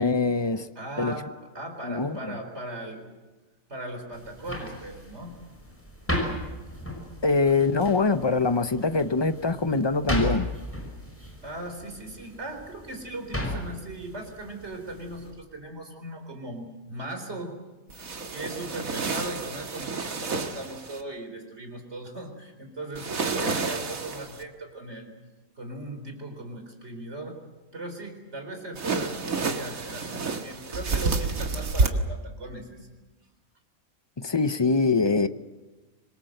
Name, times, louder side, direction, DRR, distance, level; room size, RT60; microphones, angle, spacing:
voice 1, 0.0-0.7 1.0-1.1 1.8-2.4 7.2-10.5 34.2-35.3, left 4 dB, 25° left, 0.6 m, -24 dB
voice 2, 0.8-3.1 3.7-5.3 11.4-17.6 18.3-25.1 25.6-27.4 27.7-32.9, right 2 dB, 55° right, 4.5 m, -38 dB
sound 1, 4.1-15.3, left 1 dB, 10° left, 5.7 m, -35 dB
sound 2, 17.9-21.0 22.9-24.4 28.7-31.9, right 4 dB, 85° right, 2.1 m, -29 dB
26.0 x 22.0 x 7.8 m
omnidirectional pair, 1.4 m